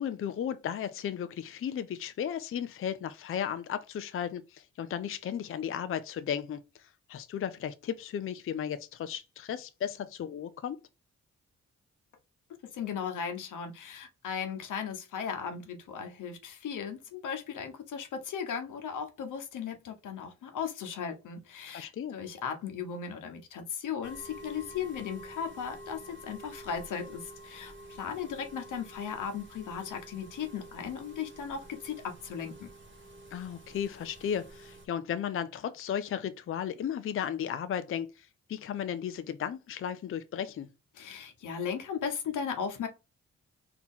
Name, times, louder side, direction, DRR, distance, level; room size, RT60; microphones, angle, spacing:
voice 1, 0.0-10.8 21.7-22.2 33.3-40.7, left 9 dB, 45° left, 0.4 m, -35 dB
voice 2, 12.7-32.0 32.2-32.7 41.0-42.9, left 7 dB, 85° left, 1.0 m, -37 dB
sound 1, 24.0-34.9, right 1 dB, 40° right, 1.3 m, -49 dB
4.2 x 2.9 x 3.6 m
cardioid pair, 80°, 30 cm